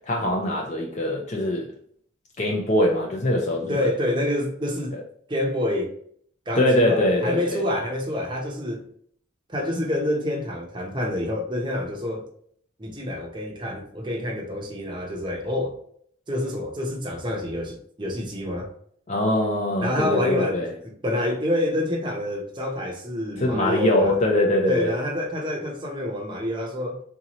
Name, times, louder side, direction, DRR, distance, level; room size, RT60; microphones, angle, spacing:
voice 1, 0.1-1.7 2.4-3.7 4.9-5.0 6.5-7.6 19.1-20.7 23.4-24.9, left 1 dB, 35° left, 0.5 m, -22 dB
voice 2, 3.7-5.0 5.3-5.9 6.5-8.9 9.5-12.2 12.8-15.8 16.3-18.7 19.8-24.1 24.7-27.0, left 1 dB, 25° right, 0.7 m, -27 dB
3.7 x 2.8 x 2.9 m
head